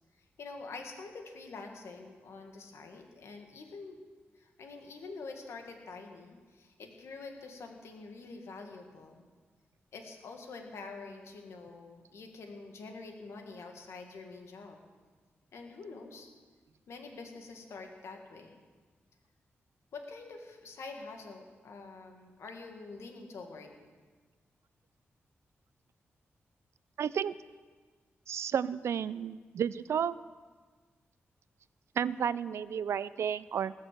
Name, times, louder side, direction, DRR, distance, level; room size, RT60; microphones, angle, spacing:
voice 1, 0.2-4.0 4.4-9.2 9.9-14.8 15.5-16.3 16.9-18.6 19.9-23.8, left 3 dB, 85° left, 3 dB, 2.0 m, -46 dB
voice 2, 27.0-27.3 28.3-30.2 32.0-33.7, right 8 dB, 80° right, 17 dB, 0.4 m, -32 dB
19.0 x 6.7 x 7.6 m, 1.4 s
cardioid pair, 80°, 5 cm